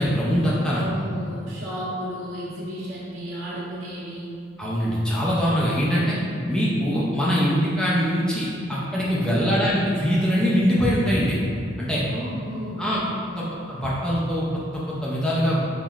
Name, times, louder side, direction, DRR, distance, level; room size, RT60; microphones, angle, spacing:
voice 1, 0.0-0.8 4.6-6.2 6.5-11.4 11.8-12.0 12.8-13.0 13.4-14.6 14.9-15.6, equal, 5° left, -7 dB, 0.3 m, -23 dB
voice 2, 0.7-4.3 9.2-9.5 11.9-13.5, equal, 85° right, -10 dB, 1.3 m, -33 dB
5.5 x 2.0 x 2.3 m, 2.4 s
head